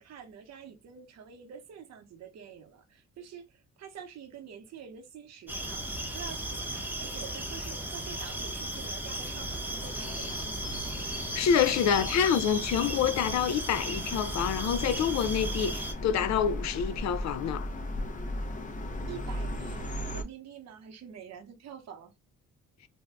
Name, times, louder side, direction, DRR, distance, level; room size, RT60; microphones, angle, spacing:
voice 1, 0.0-5.9 6.1-10.5 19.1-22.1, right 7 dB, 60° right, 0.8 m, -47 dB
sound 1, 5.5-15.9, right 1 dB, 5° right, 0.8 m, -36 dB
sound 2, 8.8-20.2, left 1 dB, 25° left, 0.7 m, -37 dB
voice 2, 11.3-17.7, left 8 dB, 65° left, 0.5 m, -27 dB
2.7 x 2.2 x 3.4 m
cardioid pair, 90°, 30 cm